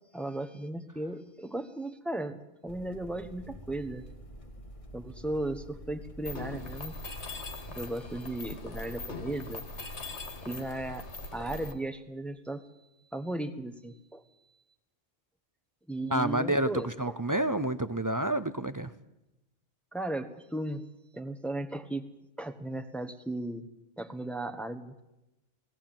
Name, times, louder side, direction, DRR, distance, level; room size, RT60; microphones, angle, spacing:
voice 1, 0.1-4.0 4.9-6.9 7.6-9.6 9.9-12.6 13.1-14.2 15.9-17.2 19.9-20.8 21.1-22.0 22.4-23.7 24.0-25.0, right 1 dB, ahead, 6 dB, 1.1 m, -36 dB
sound 1, 2.7-7.9, right 1 dB, 30° left, 1.6 m, -48 dB
Mechanisms, 6.2-11.7, left 3 dB, 65° left, 2.0 m, -41 dB
voice 2, 16.1-18.9, right 1 dB, 25° right, 12 dB, 0.5 m, -29 dB
17.5 x 17.0 x 9.0 m, 0.95 s
omnidirectional pair, 1.2 m